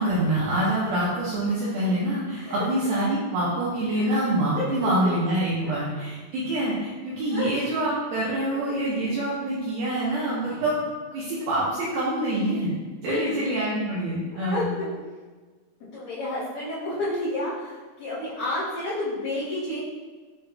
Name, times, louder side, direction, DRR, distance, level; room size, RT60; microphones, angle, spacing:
voice 1, 0.0-12.7 13.0-14.7, right 1 dB, 80° right, -7 dB, 2.3 m, -26 dB
voice 2, 4.7-5.1 5.6-5.7 7.3-7.5 13.1-13.5 14.3-14.9 15.9-19.8, left 2 dB, 65° left, -13 dB, 2.6 m, -30 dB
7.8 x 2.8 x 2.2 m, 1.3 s
omnidirectional pair, 4.9 m